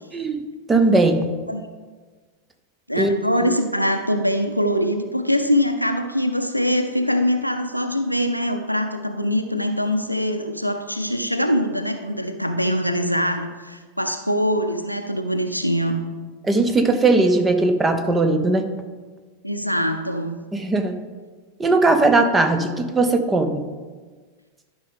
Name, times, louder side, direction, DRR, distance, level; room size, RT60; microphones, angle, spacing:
voice 1, 0.1-1.3 3.0-3.2 3.4-3.5 16.4-18.8 20.5-21.0 21.6-23.7, right 2 dB, 15° right, 8 dB, 0.7 m, -19 dB
voice 2, 2.9-16.0 19.4-20.4, equal, 90° left, 6 dB, 0.6 m, -23 dB
12.0 x 5.2 x 3.7 m, 1.4 s
figure-of-eight pair, 90°, 0 cm